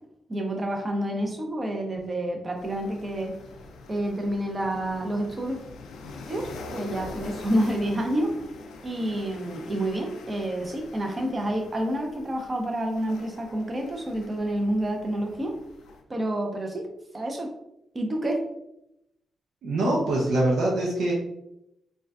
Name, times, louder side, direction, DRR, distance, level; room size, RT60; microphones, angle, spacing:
voice 1, 0.3-3.4 3.9-5.6 6.3-8.3 8.8-15.5 16.1-16.9 17.1-17.5 17.9-18.4, right 1 dB, 35° right, 2 dB, 0.8 m, -28 dB
sound 1, 2.6-16.0, left 3 dB, 80° left, 0.4 m, -44 dB
voice 2, 19.6-21.1, right 1 dB, 75° right, -2 dB, 0.6 m, -24 dB
3.8 x 2.3 x 2.5 m, 0.82 s
supercardioid pair, 50°, 0 cm